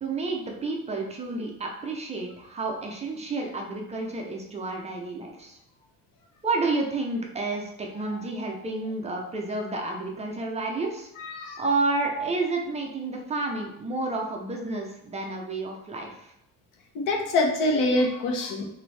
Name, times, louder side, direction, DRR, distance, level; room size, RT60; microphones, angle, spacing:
voice 1, 0.0-5.6 6.4-11.1 11.4-16.3, right 3 dB, 20° right, 1 dB, 0.5 m, -30 dB
voice 2, 11.2-11.6 16.9-18.7, left 2 dB, 75° left, 2 dB, 1.1 m, -25 dB
5.9 x 2.6 x 3.2 m, 0.78 s
cardioid pair, 170°, 32 cm